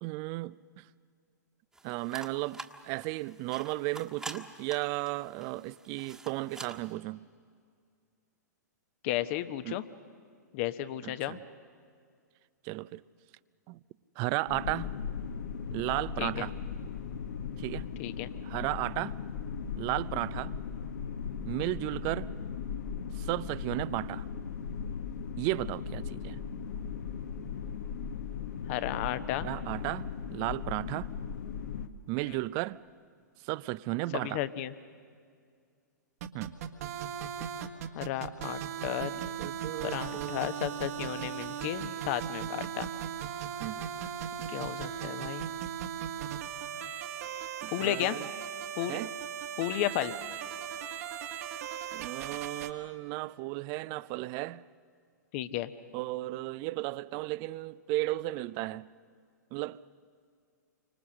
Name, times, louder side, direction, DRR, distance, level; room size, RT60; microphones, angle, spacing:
voice 1, 0.0-0.9 1.8-7.3 9.6-9.8 11.0-11.4 12.6-13.0 13.7-13.8 14.2-14.9 15.7-16.5 17.6-17.9 18.4-19.2 19.8-20.6 21.4-22.3 23.1-24.3 25.4-26.4 29.4-31.1 32.1-32.8 33.4-34.4 36.3-36.6 39.4-40.5 43.6-43.9 47.6-48.3 48.9-49.1 51.9-54.6 55.9-58.9 59.5-59.8, right 19 dB, 35° right, 0.6 m, -34 dB
sound 1, 1.7-6.9, right 2 dB, 5° right, 1.5 m, -47 dB
voice 2, 9.0-9.8 10.5-11.4 16.2-16.5 18.0-18.3 28.7-29.5 32.3-32.4 34.1-34.7 37.9-39.1 39.8-42.9 44.5-45.5 47.7-48.2 48.8-49.0 49.6-50.1 55.3-55.7, left 13 dB, 45° left, 1.1 m, -33 dB
sound 2, 14.5-31.9, left 6 dB, 65° left, 1.3 m, -38 dB
sound 3, 36.2-52.7, right 9 dB, 55° right, 1.7 m, -38 dB
28.5 x 25.5 x 6.4 m
figure-of-eight pair, 110°, 10 cm